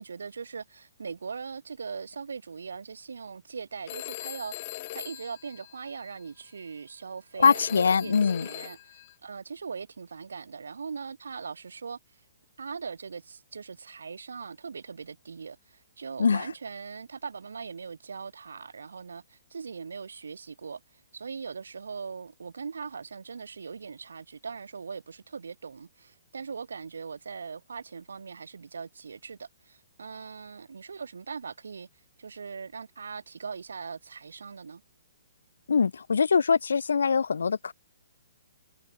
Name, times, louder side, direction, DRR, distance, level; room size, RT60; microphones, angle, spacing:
voice 1, 0.0-12.0 12.6-31.9 32.2-34.8, right 5 dB, 75° right, 1.1 m, -40 dB
Telephone, 3.9-6.2 7.4-9.1, left 17 dB, 40° left, 1.1 m, -41 dB
voice 2, 7.4-8.5 16.2-16.5 35.7-37.7, left 5 dB, 70° left, 0.5 m, -23 dB
figure-of-eight pair, 130°, 0 cm